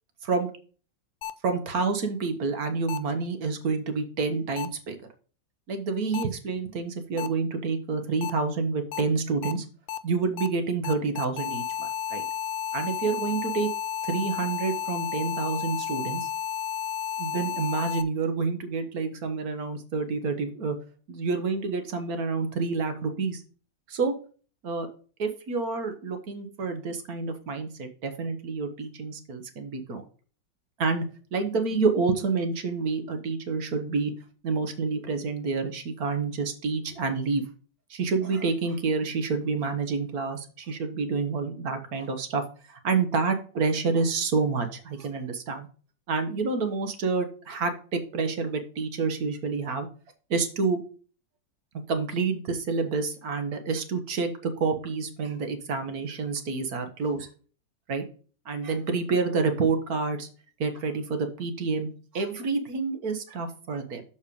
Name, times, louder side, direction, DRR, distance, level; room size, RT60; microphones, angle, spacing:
sound 1, 1.2-1.3 2.9-3.0 4.6-4.7 6.1-6.2 7.2-7.3 8.2-8.3 8.9-9.0 9.4-9.5 9.9-10.0 10.4-10.5 10.8-18.0, left 9 dB, 90° left, 1.4 m, -32 dB
voice 1, 1.4-5.0 5.7-9.6 10.0-12.2 12.7-13.7 14.0-16.3 17.2-20.8 21.1-23.4 23.9-24.1 24.6-24.9 25.2-30.0 30.8-31.0 31.3-34.1 34.4-37.4 37.9-45.7 46.1-49.9 50.3-50.8 51.9-57.3 57.9-58.0 58.5-60.3 60.6-64.0, right 4 dB, 55° right, 7 dB, 1.4 m, -28 dB
6.6 x 5.6 x 5.1 m, 0.40 s
omnidirectional pair, 2.1 m